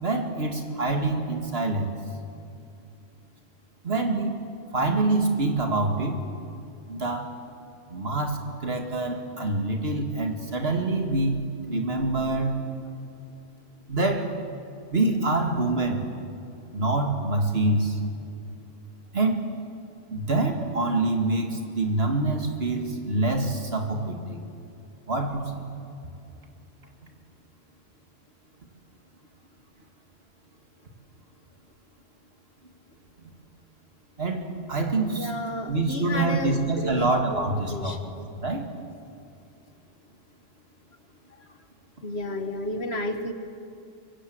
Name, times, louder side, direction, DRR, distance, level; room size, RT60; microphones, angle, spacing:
voice 1, 0.0-1.9 3.8-4.3 4.7-6.2 6.9-7.3 7.9-11.3 11.7-12.5 13.9-14.3 14.9-16.0 16.7-18.0 19.1-19.4 20.1-24.4 25.1-25.4 34.2-34.4 34.7-35.3 35.7-38.0 38.4-38.6, right 2 dB, 55° right, 4 dB, 2.4 m, -25 dB
voice 2, 35.1-38.3 42.0-43.3, left 1 dB, 55° left, 7 dB, 1.9 m, -32 dB
24.0 x 23.0 x 7.9 m, 2.6 s
omnidirectional pair, 1.3 m